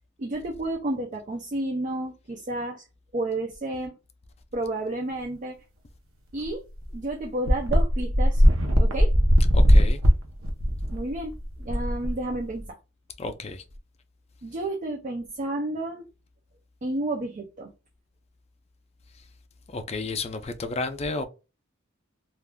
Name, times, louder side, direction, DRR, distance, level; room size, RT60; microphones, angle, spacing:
voice 1, 0.2-2.8 3.1-4.0 4.5-5.5 6.3-6.6 6.9-8.4 8.8-9.1 10.9-12.8 14.4-16.1 16.8-17.7, right 2 dB, 40° right, 0.4 m, -31 dB
sound 1, 6.4-6.5 6.8-6.9 7.5-12.6, equal, 80° right, 0.7 m, -20 dB
voice 2, 9.5-10.0 13.2-13.6 19.7-21.2, left 3 dB, 30° left, 0.4 m, -32 dB
3.5 x 2.4 x 2.2 m
head